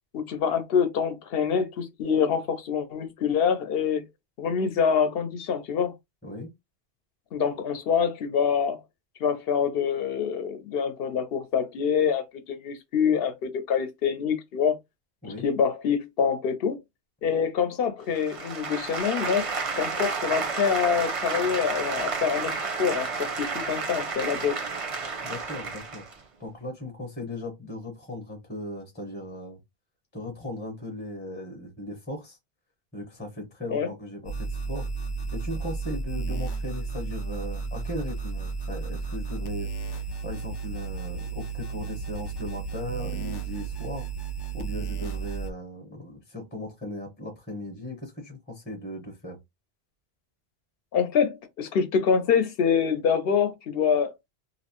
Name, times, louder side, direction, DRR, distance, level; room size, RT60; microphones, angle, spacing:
voice 1, 0.1-4.1 4.4-5.9 7.3-8.8 9.2-14.8 15.4-16.8 17.2-19.5 19.8-24.6 33.7-33.9 50.9-54.1, left 7 dB, 70° left, 0.8 m, -25 dB
sound 1, 18.1-26.2, right 4 dB, 40° right, 0.5 m, -31 dB
voice 2, 25.2-26.0 26.4-29.6 30.1-32.4 32.9-34.9 35.3-39.7 40.2-44.1 44.5-49.4, left 1 dB, 10° left, 0.8 m, -37 dB
sound 2, 34.2-45.5, right 4 dB, 45° left, 0.3 m, -33 dB
2.7 x 2.1 x 2.8 m
omnidirectional pair, 1.1 m